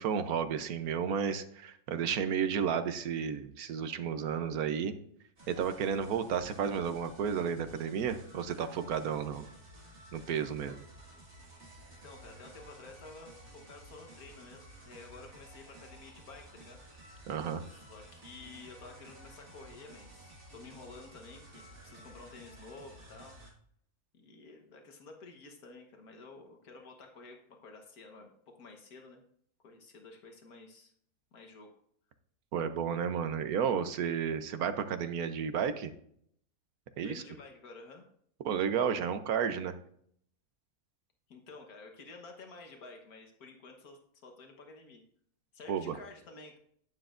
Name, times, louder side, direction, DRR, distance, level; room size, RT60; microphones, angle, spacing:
voice 1, 0.0-4.9 5.5-9.5 10.1-10.7 17.3-17.6 32.5-35.9 37.0-37.2 38.4-39.7 45.7-45.9, right 7 dB, 80° right, 10 dB, 1.3 m, -32 dB
sound 1, 5.4-23.5, right 1 dB, 50° right, 2.1 m, -53 dB
voice 2, 12.0-16.8 17.7-23.4 24.1-29.2 29.6-30.9 31.3-31.7 37.0-38.1 41.3-45.0 45.5-46.6, left 3 dB, 85° left, 3 dB, 1.7 m, -51 dB
11.5 x 9.2 x 2.5 m, 0.65 s
omnidirectional pair, 1.5 m